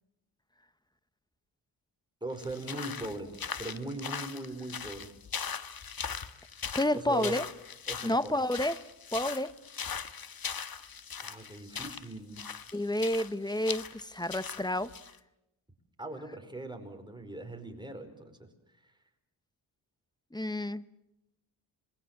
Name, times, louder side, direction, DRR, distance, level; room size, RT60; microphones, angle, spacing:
voice 1, 2.2-3.3 3.6-5.1 6.9-7.4 7.9-8.4 11.2-12.4 16.0-18.5 18.8-18.9, right 2 dB, 10° right, 5 dB, 5.0 m, -40 dB
sound 1, 2.4-15.2, left 6 dB, 50° left, 1.4 m, -40 dB
voice 2, 6.7-7.4 8.0-8.8 9.1-9.5 12.7-14.9 20.3-20.8, left 1 dB, 10° left, 15 dB, 1.0 m, -30 dB
27.5 x 21.0 x 7.4 m, 0.88 s
cardioid pair, 65°, 46 cm